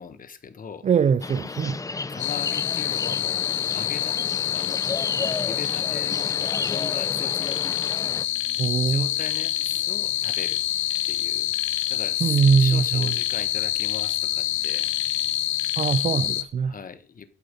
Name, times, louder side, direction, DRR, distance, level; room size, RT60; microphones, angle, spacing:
voice 1, 0.0-0.9 2.1-4.8 5.4-7.6 8.8-10.6 11.0-11.5 11.9-14.9 16.6-17.3, left 6 dB, 45° left, 1.3 m, -39 dB
voice 2, 0.8-1.8 8.6-9.1 12.2-13.1 15.8-16.7, right 6 dB, 35° right, 0.4 m, -21 dB
sound 1, 1.2-8.2, left 3 dB, 15° left, 0.5 m, -33 dB
sound 2, 2.2-16.4, left 13 dB, 80° left, 0.8 m, -26 dB
11.5 x 8.0 x 5.3 m
cardioid pair, 90°, 20 cm